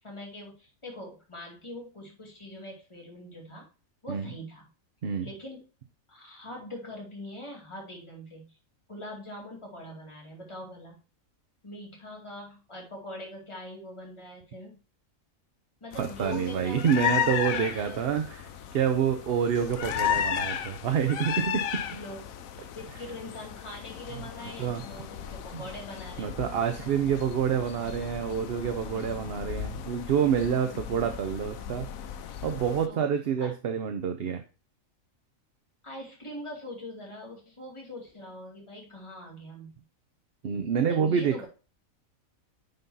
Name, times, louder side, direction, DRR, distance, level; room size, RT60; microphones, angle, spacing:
voice 1, 0.0-3.7 4.0-4.7 5.2-5.6 6.1-8.5 8.9-11.0 11.6-14.8 15.8-18.2 21.9-22.3 22.7-26.4 32.9-33.0 33.4-33.5 35.8-39.8 40.8-41.5, left 1 dB, 20° left, -1 dB, 2.3 m, -43 dB
sound 1, 15.9-32.9, left 9 dB, 85° left, 1.1 m, -35 dB
voice 2, 16.0-21.8 24.6-24.8 25.5-25.6 26.2-31.9 32.4-34.4 40.4-41.4, right 7 dB, 55° right, 7 dB, 0.8 m, -27 dB
9.4 x 5.3 x 2.7 m, 0.34 s
omnidirectional pair, 1.4 m